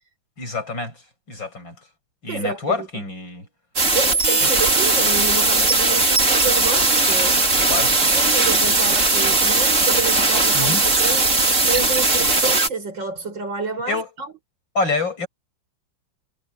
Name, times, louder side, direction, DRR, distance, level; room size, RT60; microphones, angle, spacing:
voice 1, 0.4-1.0 1.3-1.7 2.2-3.5 7.7-7.9 10.5-10.8 13.9-14.1 14.7-15.3, left 3 dB, 75° left, 8.3 m, -26 dB
voice 2, 2.3-3.0 3.9-14.3, right 4 dB, 75° right, 6.5 m, -29 dB
sound 1, 3.8-12.7, right 3 dB, 40° right, 3.6 m, -18 dB
omnidirectional pair, 2.1 m